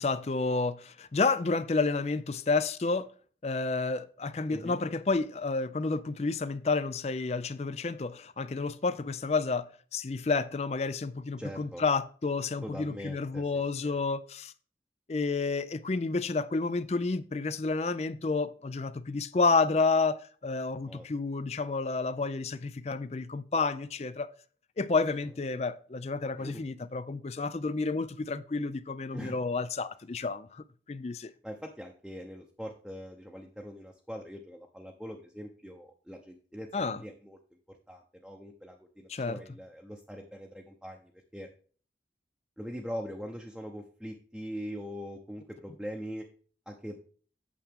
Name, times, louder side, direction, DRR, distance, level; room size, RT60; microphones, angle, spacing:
voice 1, 0.0-3.1 3.4-14.5 15.1-24.3 24.8-31.3 36.7-37.0 39.1-39.4, left 3 dB, 35° left, 0.4 m, -30 dB
voice 2, 11.4-11.8 12.6-13.9 20.9-21.0 26.4-26.6 29.1-29.4 31.4-37.4 37.9-41.5 42.6-46.2 46.7-47.0, equal, ahead, 0.8 m, -42 dB
8.6 x 7.1 x 3.6 m
head